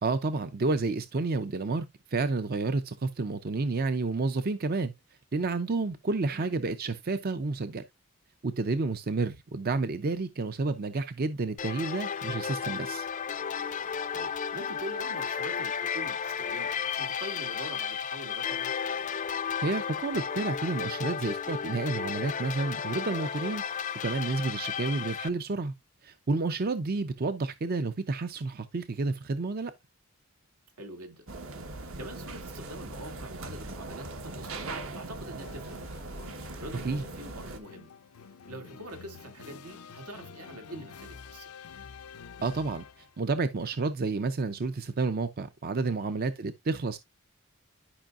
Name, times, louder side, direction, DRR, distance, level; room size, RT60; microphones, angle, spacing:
voice 1, 0.0-4.9 5.3-7.8 8.4-13.1 19.6-23.6 24.0-25.7 26.0-29.7 36.8-37.0 42.4-47.0, right 3 dB, 45° right, 0.5 m, -30 dB
sound 1, 11.6-25.3, left 7 dB, 35° left, 0.4 m, -33 dB
voice 2, 14.1-18.7 30.8-31.3 32.0-36.2 36.6-37.9 38.5-41.5 46.0-46.2, right 1 dB, 85° right, 2.3 m, -44 dB
sound 2, 31.3-37.6, right 2 dB, 60° right, 1.2 m, -40 dB
sound 3, 35.4-43.3, left 6 dB, 90° left, 0.6 m, -49 dB
11.5 x 5.4 x 2.4 m
head